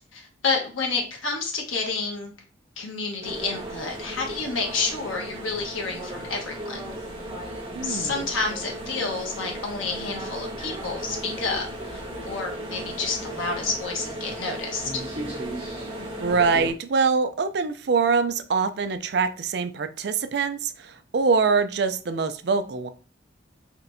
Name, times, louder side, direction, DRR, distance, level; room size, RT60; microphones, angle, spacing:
voice 1, 0.0-2.3 2.8-6.9 7.8-15.0, left 4 dB, 90° left, 1 dB, 1.2 m, -30 dB
sound 1, 3.2-16.7, right 1 dB, 30° right, 1.3 m, -35 dB
voice 2, 7.7-8.1 16.2-22.9, right 5 dB, 55° right, 10 dB, 0.4 m, -24 dB
4.3 x 3.2 x 2.6 m, 0.37 s
head